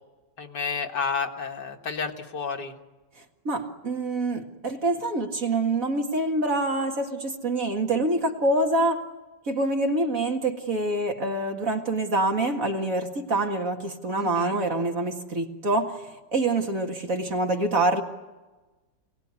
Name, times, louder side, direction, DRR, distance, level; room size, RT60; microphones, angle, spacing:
voice 1, 0.4-2.7 14.1-14.6, left 5 dB, 65° left, 3 dB, 2.2 m, -31 dB
voice 2, 3.4-9.0 9.5-18.0, right 2 dB, 45° right, 2 dB, 2.3 m, -26 dB
27.0 x 18.5 x 9.8 m, 1.2 s
omnidirectional pair, 2.0 m